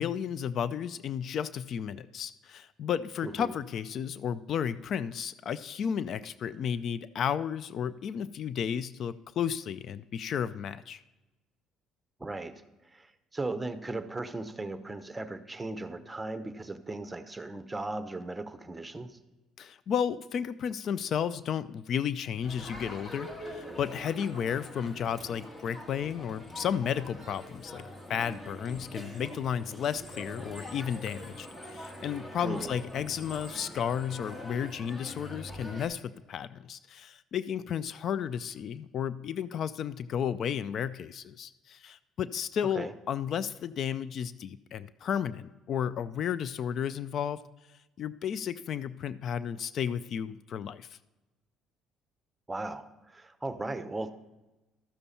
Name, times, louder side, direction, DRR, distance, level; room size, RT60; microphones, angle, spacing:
voice 1, 0.0-11.0 19.6-27.8 28.1-47.4 48.0-51.0, left 8 dB, 55° left, 17 dB, 0.3 m, -33 dB
voice 2, 3.2-3.5 12.2-12.5 12.9-19.2 32.4-32.7 42.7-42.9 52.5-54.1, right 2 dB, 15° right, 10 dB, 0.8 m, -37 dB
Crowd, 22.4-35.9, equal, 25° left, 1.9 m, -44 dB
13.0 x 6.9 x 4.2 m, 1.1 s
supercardioid pair, 75°, 0 cm